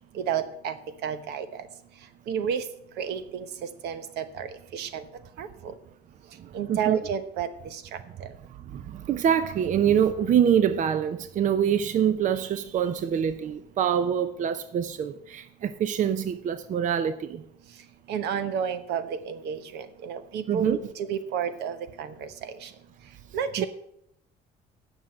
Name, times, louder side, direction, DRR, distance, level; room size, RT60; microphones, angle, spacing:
voice 1, 0.1-0.7 1.0-1.6 2.3-2.6 3.0-3.5 3.8-5.0 5.4-5.7 6.5-7.8 8.2-8.3 18.1-22.7 23.3-23.7, right 8 dB, 80° right, 1.0 m, -31 dB
voice 2, 6.4-7.0 8.7-17.4 20.5-20.8 23.6-23.7, right 8 dB, 50° right, 0.6 m, -25 dB
9.2 x 6.2 x 7.5 m
cardioid pair, 110°, 17 cm